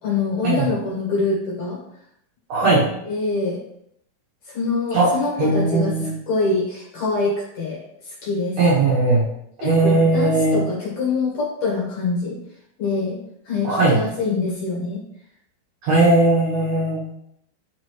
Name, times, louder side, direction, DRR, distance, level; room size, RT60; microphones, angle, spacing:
voice 1, 0.0-1.8 3.0-3.6 4.5-7.8 8.1-8.6 9.6-12.4 12.8-13.2 13.5-15.0, left 3 dB, 55° left, -4 dB, 2.3 m, -24 dB
voice 2, 2.5-2.9 4.9-5.1 5.4-6.1 8.6-9.3 9.6-10.6 13.6-14.0 15.8-17.0, right 2 dB, 55° right, -6 dB, 2.3 m, -18 dB
10.0 x 4.2 x 3.1 m, 0.75 s
omnidirectional pair, 4.3 m